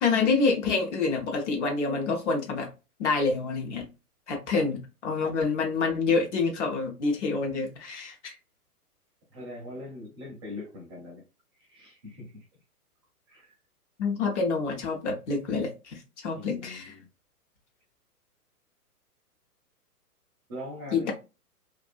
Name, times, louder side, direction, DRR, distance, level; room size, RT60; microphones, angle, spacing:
voice 1, 0.0-2.7 3.0-3.8 4.3-8.3 14.0-16.9 20.9-21.1, left 4 dB, 50° left, 1.0 m, -27 dB
voice 2, 9.3-11.2 11.6-12.5 13.3-13.5 16.3-17.1 20.5-21.1, left 1 dB, 20° right, 0.5 m, -42 dB
2.5 x 2.4 x 2.4 m
figure-of-eight pair, 120°, 47 cm